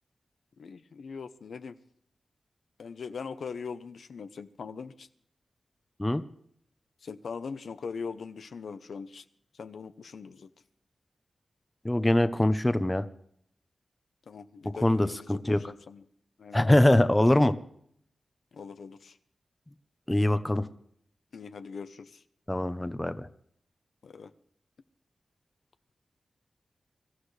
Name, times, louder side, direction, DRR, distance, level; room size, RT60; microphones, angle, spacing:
voice 1, 0.6-1.8 2.8-5.1 7.0-9.2 9.5-10.5 14.3-16.0 16.4-16.9 18.5-19.2 21.3-22.2 24.0-24.3, left 5 dB, 85° left, 10 dB, 0.8 m, -41 dB
voice 2, 11.8-13.0 14.8-15.6 16.5-17.5 20.1-20.7 22.5-23.3, left 1 dB, 15° left, 11 dB, 0.9 m, -23 dB
24.0 x 13.5 x 3.3 m, 0.68 s
wide cardioid pair, 90°, 0 cm